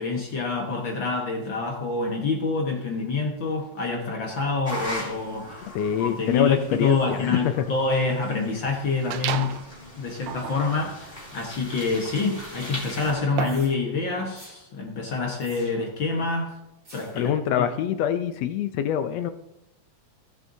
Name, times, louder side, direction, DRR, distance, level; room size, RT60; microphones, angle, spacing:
voice 1, 0.0-5.7 6.0-9.5 10.0-16.6 16.9-17.7, left 3 dB, 50° left, 0 dB, 1.6 m, -27 dB
sound 1, 4.6-13.1, left 1 dB, 15° left, 2.8 m, -40 dB
voice 2, 5.6-7.6 17.1-19.3, left 9 dB, 80° left, 10 dB, 1.5 m, -25 dB
sound 2, 9.1-9.7 10.2-13.8, right 10 dB, 75° right, 1.8 m, -34 dB
sound 3, 13.4-13.8 14.3-14.6 15.4-16.0 16.8-17.3, right 1 dB, 20° right, 1.4 m, -49 dB
18.0 x 8.0 x 2.7 m, 0.88 s
omnidirectional pair, 3.5 m